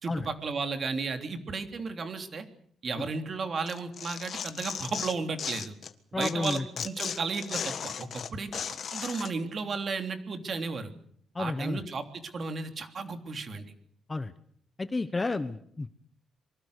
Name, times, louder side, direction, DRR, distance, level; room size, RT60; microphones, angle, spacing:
voice 1, 0.0-2.4 2.8-5.7 6.1-10.9 11.4-13.7, right 4 dB, 35° right, 7 dB, 3.1 m, -34 dB
Tearing, 3.7-5.9 6.2-9.3, left 7 dB, 45° left, 1.6 m, -36 dB
voice 2, 6.1-6.6 11.3-11.8 14.1-14.3 14.8-15.9, left 3 dB, 15° left, 12 dB, 1.0 m, -31 dB
26.0 x 24.0 x 6.7 m, 0.64 s
cardioid pair, 155°, 0 cm